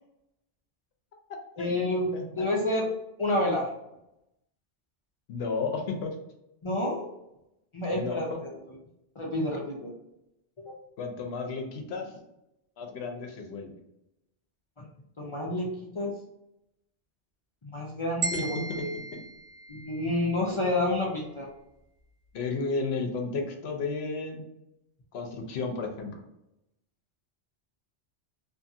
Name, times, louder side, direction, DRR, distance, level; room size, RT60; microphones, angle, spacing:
voice 1, 1.6-2.1 2.4-2.8 3.2-3.7 6.6-7.1 7.7-8.5 9.2-9.9 10.6-10.7 15.2-16.1 17.6-18.9 19.7-21.5, left 1 dB, 45° left, -3 dB, 0.4 m, -29 dB
voice 2, 2.1-2.5 5.3-6.1 7.9-8.4 11.0-12.1 12.8-13.8 18.3-18.8 19.1-19.2 22.3-24.4 25.1-26.2, left 4 dB, 70° left, 3 dB, 0.8 m, -33 dB
sound 1, 18.2-20.4, right 3 dB, 55° right, 0.7 m, -36 dB
2.6 x 2.4 x 2.6 m, 0.86 s
omnidirectional pair, 1.2 m